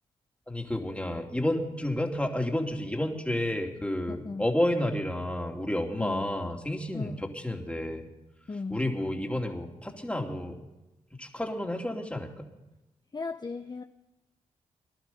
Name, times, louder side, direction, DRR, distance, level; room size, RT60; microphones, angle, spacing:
voice 1, 0.5-8.1 8.7-10.6 11.2-12.3, left 1 dB, 10° left, 2 dB, 2.8 m, -30 dB
voice 2, 4.1-4.4 6.0-6.3 6.9-7.2 8.5-8.8 13.1-13.8, left 4 dB, 30° left, 8 dB, 0.7 m, -36 dB
19.5 x 11.5 x 5.7 m, 1.0 s
supercardioid pair, 45°, 14 cm